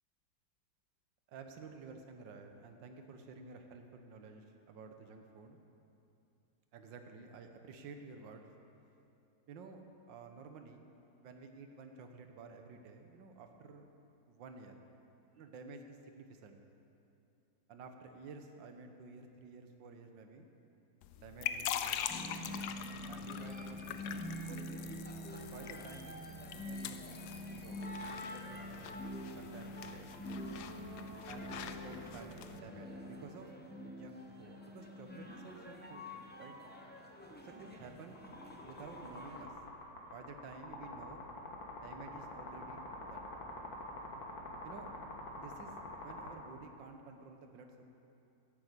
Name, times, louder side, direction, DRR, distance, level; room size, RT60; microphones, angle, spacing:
voice 1, 1.3-5.6 6.7-8.5 9.5-9.8 10.1-10.8 11.2-13.9 14.3-14.8 15.4-16.6 17.7-20.5 21.2-22.5 23.1-24.9 25.3-26.2 26.5-28.8 29.4-30.1 31.3-33.5 33.8-36.1 36.4-36.5 37.4-38.3 38.6-39.6 40.0-41.2 41.7-43.3 44.6-44.9 45.3-47.9, right 4 dB, 75° right, 5 dB, 1.7 m, -52 dB
sound 1, 21.0-32.6, left 9 dB, 70° left, 1.0 m, -44 dB
sound 2, 22.1-39.5, equal, 15° left, 0.3 m, -46 dB
sound 3, 38.2-46.3, left 2 dB, 55° left, 2.0 m, -46 dB
11.0 x 8.6 x 8.1 m, 2.7 s
omnidirectional pair, 2.0 m